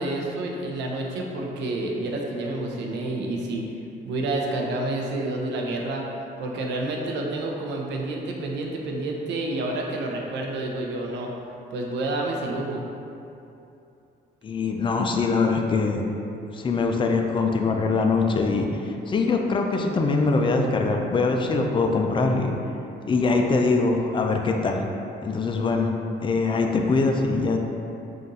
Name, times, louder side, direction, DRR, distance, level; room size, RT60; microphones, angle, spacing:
voice 1, 0.0-3.6 4.0-6.0 6.4-11.3 11.7-12.8, right 2 dB, 80° right, 0 dB, 0.6 m, -29 dB
voice 2, 14.4-16.0 16.5-22.5 23.0-24.8 25.2-25.9 26.2-27.6, left 3 dB, 30° left, 3 dB, 0.4 m, -23 dB
3.8 x 2.5 x 4.0 m, 2.8 s
cardioid pair, 100°, 18 cm